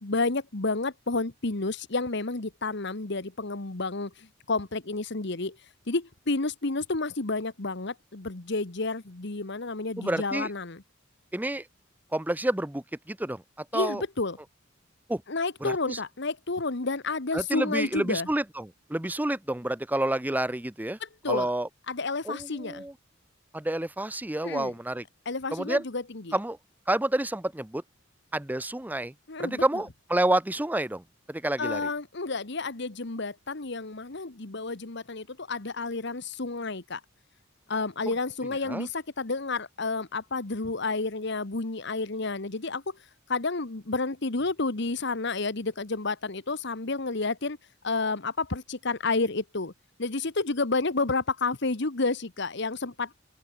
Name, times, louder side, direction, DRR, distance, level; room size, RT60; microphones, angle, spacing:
voice 1, 0.0-5.6 5.9-10.8 13.7-14.4 15.3-18.3 21.0-21.5 21.9-22.8 24.4-24.7 25.2-26.4 29.3-29.6 31.6-37.0 37.7-43.0 43.3-47.6 47.8-49.7 50.0-53.1, left 3 dB, 60° left, 1.4 m, -30 dB
voice 2, 10.0-10.5 11.3-11.7 12.1-14.0 15.1-15.2 15.6-16.0 17.3-21.0 21.3-21.7 22.2-22.9 23.5-25.0 25.5-25.8 26.3-26.6 26.9-27.8 28.3-29.1 29.4-31.9 38.7-38.9, right 1 dB, 10° right, 0.7 m, -29 dB
open air
head